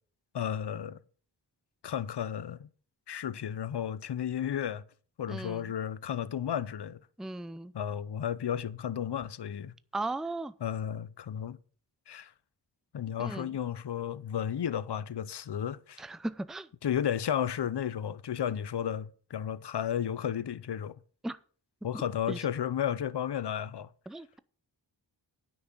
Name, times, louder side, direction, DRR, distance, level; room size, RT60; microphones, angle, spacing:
voice 1, 0.3-1.0 1.8-2.7 3.1-4.8 5.2-7.0 7.7-9.7 10.6-11.6 12.1-12.3 12.9-16.0 16.8-21.0 21.8-23.9, left 9 dB, 70° left, 0.7 m, -33 dB
voice 2, 5.3-5.6 7.2-7.7 9.9-10.5 13.2-13.5 16.0-16.7 21.2-21.4 22.3-22.4 24.1-24.4, right 2 dB, ahead, 0.5 m, -36 dB
9.7 x 6.2 x 7.2 m
wide cardioid pair, 55°, 43 cm